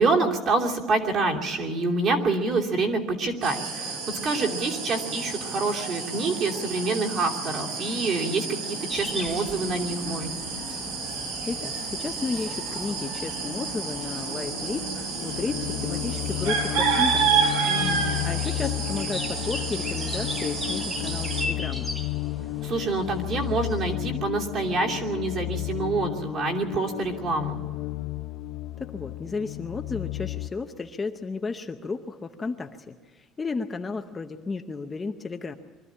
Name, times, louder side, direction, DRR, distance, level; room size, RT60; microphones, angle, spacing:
voice 1, 0.0-10.3 17.7-18.0 22.6-27.6, right 3 dB, 35° right, 0 dB, 2.8 m, -27 dB
sound 1, 3.4-21.5, right 5 dB, 90° right, 5.9 m, -30 dB
sound 2, 8.9-23.9, left 1 dB, 5° right, 1.3 m, -39 dB
voice 2, 11.4-17.5 18.2-21.9 28.8-35.5, left 4 dB, 15° left, 5 dB, 0.7 m, -33 dB
sound 3, 15.3-30.5, left 18 dB, 55° left, 0.9 m, -32 dB
24.0 x 14.0 x 9.9 m, 1.4 s
cardioid pair, 175°, 0 cm